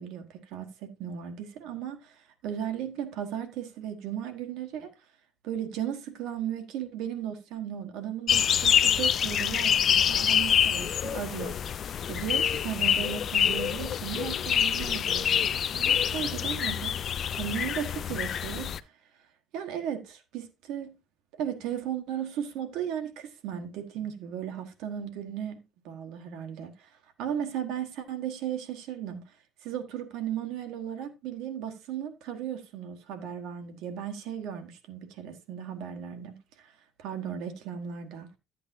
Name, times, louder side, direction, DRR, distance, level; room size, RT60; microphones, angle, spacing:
voice 1, 0.0-4.9 5.4-11.5 12.1-16.9 17.4-18.9 19.5-20.9 21.4-26.9 27.2-29.2 29.6-36.7 37.0-38.3, right 9 dB, 90° right, 1.3 m, -36 dB
sound 1, 8.3-18.8, left 9 dB, 45° left, 0.4 m, -26 dB
11.0 x 8.3 x 2.7 m
cardioid pair, 145°, 0 cm